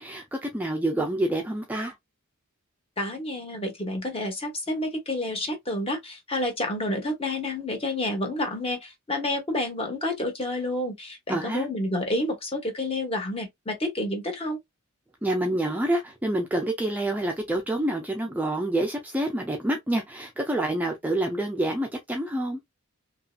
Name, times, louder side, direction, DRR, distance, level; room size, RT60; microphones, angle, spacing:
voice 1, 0.0-1.9 11.3-11.7 15.2-22.6, right 1 dB, 10° right, 0.4 m, -27 dB
voice 2, 3.0-14.6, left 1 dB, 25° left, 0.9 m, -29 dB
2.9 x 2.7 x 2.2 m
head